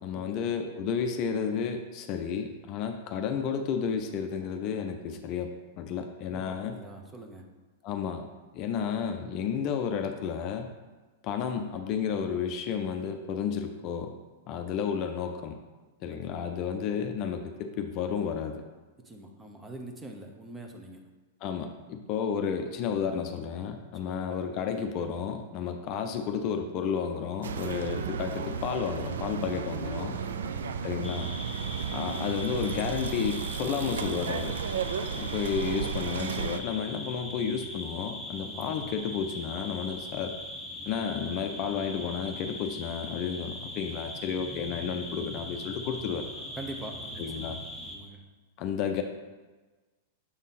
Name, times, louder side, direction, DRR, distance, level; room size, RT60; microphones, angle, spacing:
voice 1, 0.0-6.8 7.8-8.3 8.5-10.7 11.2-14.1 14.5-15.6 16.0-18.6 21.4-30.2 30.8-31.3 31.9-34.6 35.1-40.3 40.9-46.3 47.2-47.6 48.6-49.0, left 7 dB, 45° left, 6 dB, 0.5 m, -32 dB
voice 2, 6.3-7.5 16.1-16.6 19.0-21.0 24.0-24.3 30.2-30.7 38.4-38.8 46.6-47.5 47.8-48.2, right 1 dB, 15° right, 3 dB, 0.9 m, -44 dB
sound 1, 27.4-36.6, right 6 dB, 75° right, 0.4 m, -34 dB
sound 2, 31.0-48.0, left 1 dB, 5° left, 1.1 m, -41 dB
7.0 x 3.6 x 4.2 m, 1.3 s
hypercardioid pair, 105°, 0 cm